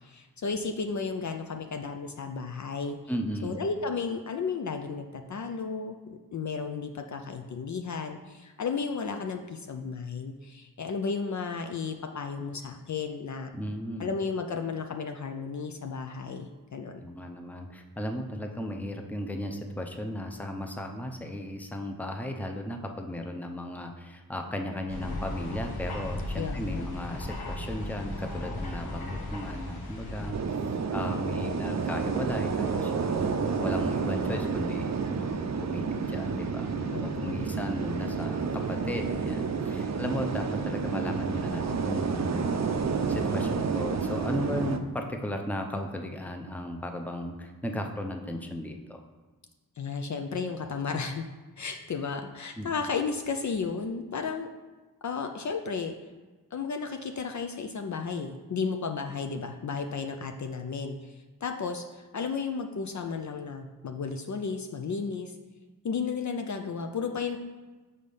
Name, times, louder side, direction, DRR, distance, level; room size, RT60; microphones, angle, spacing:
voice 1, 0.0-3.0 3.4-13.5 14.0-17.0 26.3-26.8 36.9-37.5 49.8-51.2 51.6-54.5 55.0-55.9 56.5-65.4 65.8-67.4, left 5 dB, 50° left, 5 dB, 0.5 m, -33 dB
voice 2, 3.1-3.6 13.5-14.1 17.0-30.4 30.9-42.5 43.1-49.0 52.6-52.7, left 1 dB, 5° left, 4 dB, 0.6 m, -35 dB
sound 1, 24.9-30.3, left 1 dB, 85° left, 1.1 m, -36 dB
sound 2, 30.3-44.8, right 5 dB, 45° right, 0.5 m, -30 dB
5.0 x 4.1 x 5.5 m, 1.3 s
cardioid pair, 65°, 37 cm